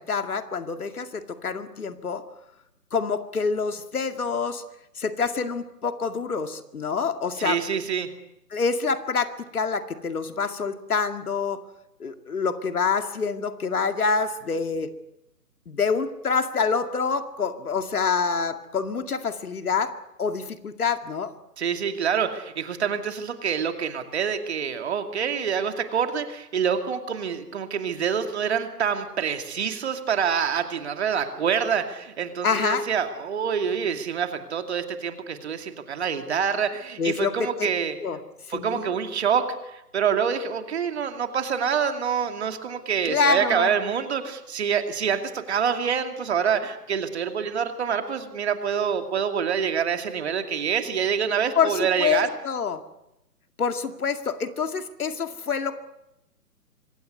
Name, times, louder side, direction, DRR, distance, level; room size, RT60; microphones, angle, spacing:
voice 1, 0.0-2.2 2.9-4.6 5.0-7.6 8.5-11.6 12.0-14.9 15.7-21.3 32.4-32.9 37.0-37.7 38.0-38.2 38.5-38.9 43.0-43.7 51.6-52.8 53.6-55.8, left 5 dB, 65° left, 8 dB, 2.3 m, -26 dB
voice 2, 7.4-8.1 21.6-38.0 38.5-52.3, right 7 dB, 40° right, 7 dB, 2.6 m, -26 dB
25.0 x 17.0 x 9.7 m, 0.88 s
figure-of-eight pair, 150°, 48 cm